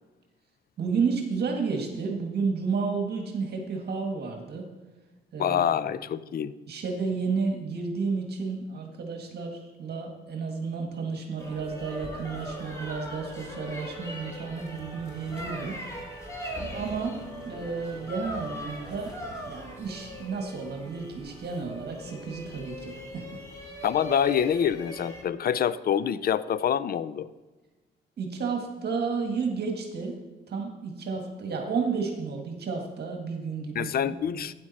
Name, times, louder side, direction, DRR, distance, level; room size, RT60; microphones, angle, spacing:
voice 1, 0.8-4.7 5.3-5.9 6.7-15.8 16.7-17.2 17.5-19.1 19.4-23.4 28.2-30.2 30.5-34.5, right 5 dB, 55° right, 2 dB, 1.8 m, -32 dB
voice 2, 5.4-6.5 23.8-27.3 33.8-34.5, left 8 dB, 50° left, 17 dB, 0.5 m, -26 dB
sound 1, 11.4-25.2, equal, 15° left, 2.6 m, -40 dB
sound 2, 14.8-20.2, right 1 dB, 5° right, 3.0 m, -47 dB
12.0 x 9.5 x 4.1 m, 1.2 s
cardioid pair, 90°, 20 cm